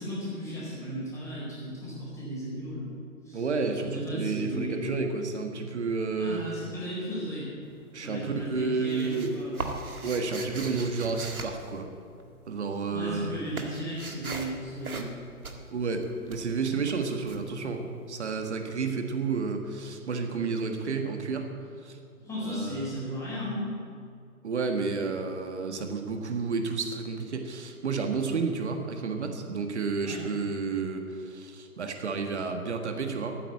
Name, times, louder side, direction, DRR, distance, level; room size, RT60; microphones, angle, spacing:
voice 1, 0.0-2.9 3.2-3.4 3.8-4.9 6.2-7.5 8.0-9.7 12.9-15.2 22.2-23.7 30.0-30.2, equal, 5° left, -8 dB, 4.5 m, -35 dB
voice 2, 3.3-6.4 7.9-9.3 10.0-11.9 12.5-13.3 15.7-21.5 21.8-22.0 22.4-22.9 24.4-33.4, right 4 dB, 50° right, 6 dB, 1.7 m, -31 dB
sound 1, 7.6-8.2 8.4-12.5 12.8-18.4, right 3 dB, 75° right, 2.0 m, -40 dB
13.5 x 9.2 x 8.5 m, 2.3 s
figure-of-eight pair, 140°, 44 cm